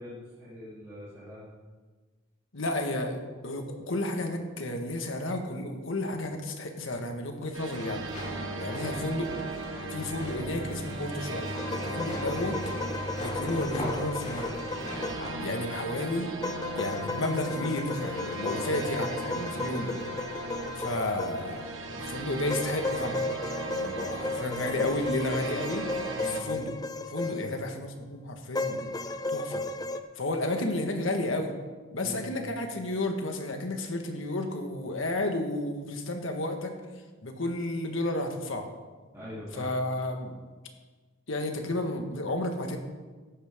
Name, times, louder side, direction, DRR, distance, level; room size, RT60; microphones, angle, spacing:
voice 1, 0.0-1.5 8.4-8.6 15.0-15.2 18.3-18.9 19.4-19.7 26.2-26.4 27.2-27.5 32.0-32.2 39.1-39.7, equal, 15° right, -11 dB, 3.3 m, -43 dB
voice 2, 2.5-8.1 8.5-9.3 9.9-12.6 13.2-14.6 15.4-16.3 16.8-19.9 20.8-23.3 23.6-25.9 26.2-26.7 27.1-28.9 29.3-29.6 30.1-31.5 31.9-36.7 37.2-38.7 39.5-40.4 41.3-42.8, left 1 dB, 70° left, 4 dB, 1.6 m, -32 dB
sound 1, 7.5-26.4, right 2 dB, 75° right, 1.3 m, -37 dB
sound 2, 8.0-15.3, left 1 dB, 35° left, 3.4 m, -41 dB
sound 3, 11.5-15.4 16.4-21.7 22.5-27.7 28.5-30.0, left 2 dB, 20° left, 0.4 m, -35 dB
14.5 x 11.0 x 3.7 m, 1.4 s
head